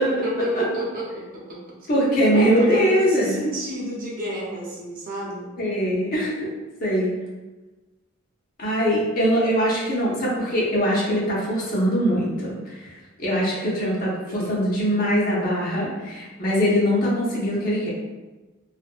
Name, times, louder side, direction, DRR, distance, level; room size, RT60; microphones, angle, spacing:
voice 1, 0.0-1.9 2.3-5.5 14.3-14.5, right 1 dB, 40° right, -4 dB, 0.6 m, -30 dB
voice 2, 1.9-3.4 5.6-6.5 6.8-7.1 8.6-12.9 13.2-17.9, equal, 45° left, -5 dB, 0.7 m, -22 dB
2.6 x 2.5 x 2.3 m, 1.2 s
head